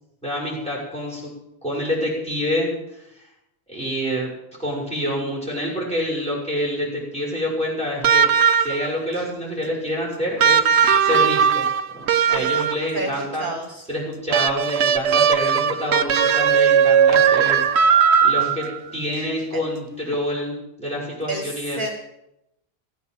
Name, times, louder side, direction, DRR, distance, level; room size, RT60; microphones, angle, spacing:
voice 1, 0.2-1.3 1.6-3.3 3.7-4.3 4.6-8.3 8.6-10.6 11.0-11.6 11.9-13.5 13.9-17.6 18.2-18.7 18.9-21.9, equal, 5° left, -3 dB, 5.5 m, -27 dB
sound 1, 8.0-9.0 10.4-13.0 14.3-18.8 20.1-20.2, right 7 dB, 90° right, 1.0 m, -18 dB
voice 2, 12.9-13.8 19.5-19.6 21.3-21.9, right 2 dB, 50° right, 3 dB, 1.6 m, -30 dB
16.0 x 8.4 x 7.3 m, 0.83 s
omnidirectional pair, 1.1 m